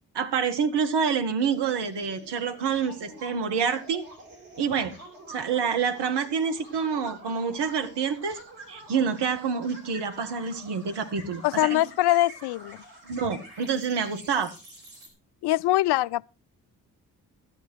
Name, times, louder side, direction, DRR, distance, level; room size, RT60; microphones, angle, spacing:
voice 1, 0.1-4.0 4.6-4.9 5.3-8.4 8.7-11.8 13.1-14.5, right 6 dB, 60° right, 1.9 m, -27 dB
sound 1, 1.4-15.1, right 1 dB, 80° right, 4.8 m, -47 dB
voice 2, 11.4-12.8 15.4-16.3, left 15 dB, 60° left, 0.6 m, -23 dB
13.5 x 10.5 x 4.6 m
hypercardioid pair, 40°, 45 cm